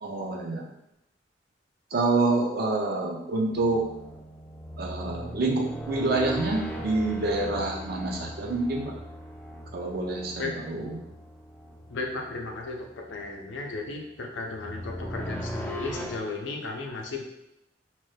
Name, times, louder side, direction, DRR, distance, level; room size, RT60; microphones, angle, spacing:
voice 1, 0.0-0.7 1.9-3.8 4.8-8.9 9.7-11.0, right 2 dB, 55° right, -1 dB, 0.5 m, -27 dB
sound 1, 3.5-16.2, right 1 dB, 10° left, 0.3 m, -39 dB
voice 2, 11.9-17.2, left 3 dB, 90° left, 1 dB, 0.5 m, -35 dB
3.0 x 2.2 x 3.2 m, 0.84 s
head